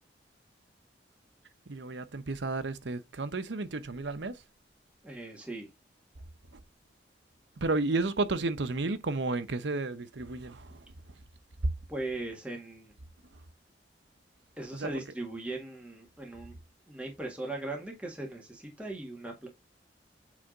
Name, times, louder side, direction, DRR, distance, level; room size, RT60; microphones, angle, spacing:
voice 1, 1.7-4.4 7.6-10.9 14.7-14.9, right 3 dB, 75° right, 0.8 m, -32 dB
voice 2, 5.0-5.7 11.9-12.9 14.6-16.6 16.9-19.5, right 2 dB, 5° right, 1.8 m, -39 dB
8.3 x 3.4 x 3.8 m
head